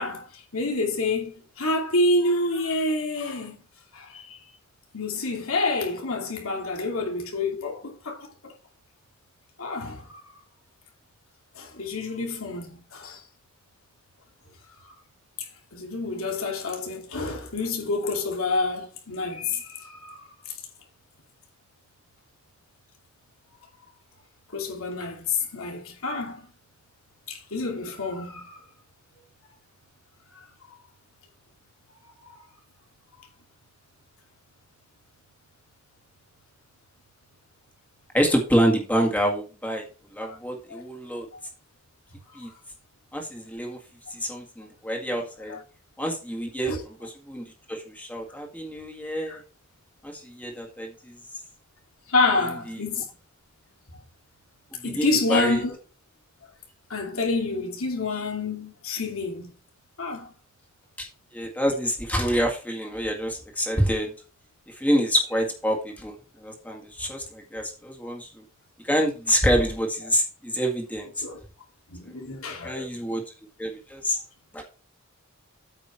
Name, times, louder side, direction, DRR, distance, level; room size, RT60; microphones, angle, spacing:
voice 1, 0.0-3.5 3.9-4.4 4.9-8.5 9.6-10.2 11.5-13.2 15.7-20.3 24.5-26.5 27.3-28.6 32.2-32.4 40.2-40.4 40.7-40.8 42.4-42.5 45.5-45.6 46.7-46.8 49.3-49.4 52.1-53.1 54.8-55.7 56.9-59.5 60.0-60.3 71.2-71.4 71.9-72.9, left 2 dB, 75° left, 2.7 m, -28 dB
voice 2, 38.1-39.8 40.1-41.3 42.4-42.5 43.1-43.8 44.1-45.6 46.0-46.7 47.0-49.4 50.0-51.2 52.4-52.8 54.8-55.6 61.0-61.1 61.3-64.1 64.7-68.4 68.8-71.1 72.1-72.2 72.6-73.2 73.6-74.2 74.5-74.6, equal, 10° left, 1.8 m, -27 dB
8.7 x 5.3 x 4.6 m
head